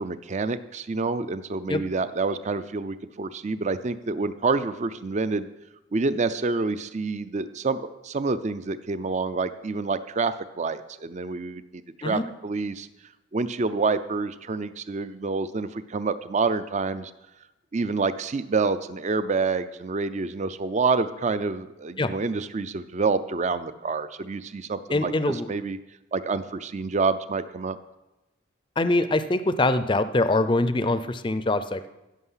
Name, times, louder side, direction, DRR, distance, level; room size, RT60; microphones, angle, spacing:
voice 1, 0.0-5.5 5.9-12.9 13.3-17.1 17.7-25.8 26.1-27.8, right 4 dB, 35° right, 13 dB, 0.5 m, -27 dB
voice 2, 24.9-25.5 28.8-31.9, left 2 dB, 25° left, 12 dB, 0.5 m, -23 dB
15.5 x 6.4 x 5.6 m, 1.0 s
head